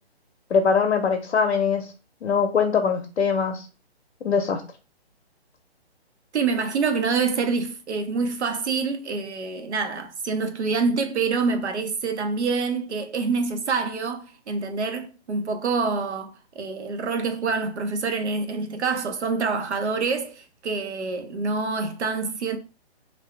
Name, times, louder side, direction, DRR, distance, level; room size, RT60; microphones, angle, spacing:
voice 1, 0.5-1.9 2.2-3.7 4.2-4.6, left 6 dB, 85° left, 0.6 m, -22 dB
voice 2, 6.3-22.6, right 4 dB, 85° right, 0.8 m, -26 dB
2.6 x 2.0 x 3.1 m
hypercardioid pair, 180°, 33 cm